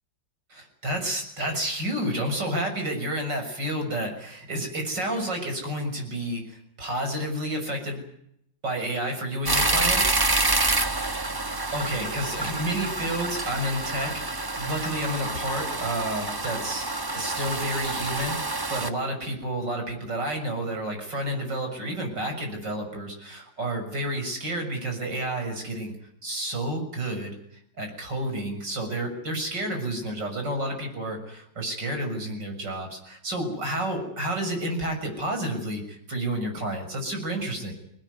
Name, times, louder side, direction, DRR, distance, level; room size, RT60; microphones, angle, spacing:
voice 1, 0.5-8.0 8.6-10.2 11.5-25.9 26.2-27.3 27.8-37.7, right 1 dB, 70° right, 3 dB, 7.4 m, -30 dB
sound 1, 9.4-18.9, right 2 dB, 15° right, 0.9 m, -27 dB
24.0 x 19.5 x 9.4 m, 0.74 s
omnidirectional pair, 2.0 m